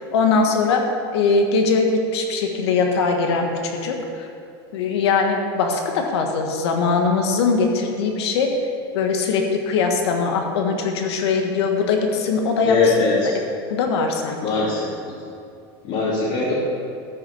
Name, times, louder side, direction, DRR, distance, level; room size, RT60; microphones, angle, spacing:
voice 1, 0.1-0.8 1.1-4.3 4.7-8.5 8.9-12.9 13.7-14.6, left 4 dB, 85° left, 3 dB, 1.6 m, -21 dB
voice 2, 12.6-13.3 14.4-15.2 15.8-16.5, left 4 dB, 55° left, -8 dB, 2.7 m, -21 dB
14.0 x 6.1 x 5.5 m, 2.4 s
supercardioid pair, 140°, 14 cm